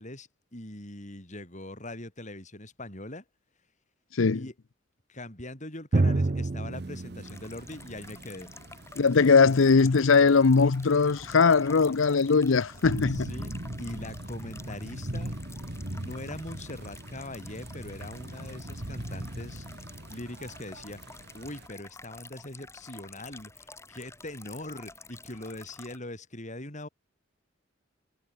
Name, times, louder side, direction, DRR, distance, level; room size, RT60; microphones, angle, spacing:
voice 1, 0.0-3.2 4.3-4.5 5.1-8.5 9.2-9.5 13.0-13.5 13.8-15.4 15.9-19.7 20.1-21.0 21.3-26.9, left 1 dB, 40° left, 7.5 m, -41 dB
Drum, 5.9-9.4, right 2 dB, 40° right, 0.6 m, -29 dB
sound 1, 6.7-21.7, right 1 dB, 55° right, 2.9 m, -41 dB
sound 2, 7.2-26.0, left 3 dB, 15° left, 3.4 m, -50 dB
voice 2, 9.0-13.3, left 4 dB, 80° left, 0.7 m, -20 dB
head